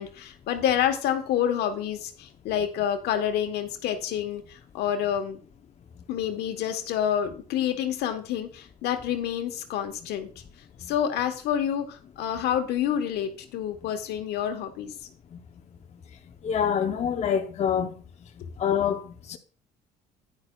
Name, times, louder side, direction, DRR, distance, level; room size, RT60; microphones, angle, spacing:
voice 1, 0.0-5.4 6.1-10.3 10.9-14.9, left 9 dB, 80° left, 1.3 m, -28 dB
voice 2, 16.4-17.9 18.6-19.4, left 8 dB, 40° left, 0.7 m, -26 dB
10.5 x 9.6 x 2.3 m
cardioid pair, 110°, 17 cm